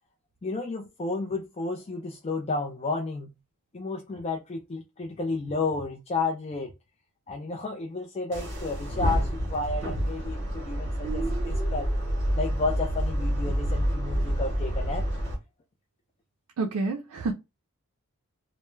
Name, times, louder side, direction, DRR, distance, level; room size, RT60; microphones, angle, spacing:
voice 1, 0.4-3.3 3.7-6.7 7.3-11.9 12.4-15.0, left 3 dB, 30° left, 0.3 m, -32 dB
sound 1, 8.3-15.4, equal, 55° right, 0.8 m, -28 dB
voice 2, 16.6-17.3, right 3 dB, 85° right, 0.4 m, -28 dB
2.2 x 2.0 x 3.0 m
head